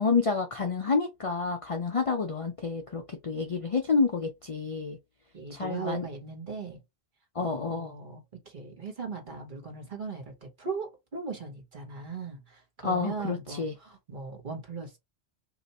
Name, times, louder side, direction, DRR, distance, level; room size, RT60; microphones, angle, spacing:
voice 1, 0.0-5.0 5.5-6.0 7.3-7.9 12.8-13.7, left 4 dB, 45° left, 0.4 m, -29 dB
voice 2, 5.3-6.8 7.4-15.0, right 4 dB, 50° right, 1.2 m, -39 dB
2.8 x 2.5 x 4.1 m
omnidirectional pair, 1.1 m